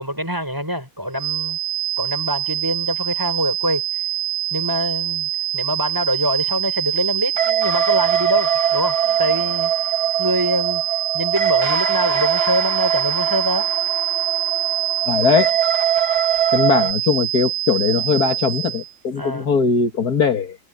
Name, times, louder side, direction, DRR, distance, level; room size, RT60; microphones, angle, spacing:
voice 1, 0.0-1.6 2.0-3.8 4.5-9.7 10.2-10.8 11.1-13.7 19.2-19.5, equal, 10° right, 6.4 m, -24 dB
Microphone feedback, 1.2-18.9, right 13 dB, 70° right, 2.3 m, -25 dB
sound 1, 7.4-16.9, right 8 dB, 85° right, 4.3 m, -22 dB
voice 2, 15.1-15.6 16.5-20.6, left 5 dB, 70° left, 2.3 m, -19 dB
omnidirectional pair, 1.7 m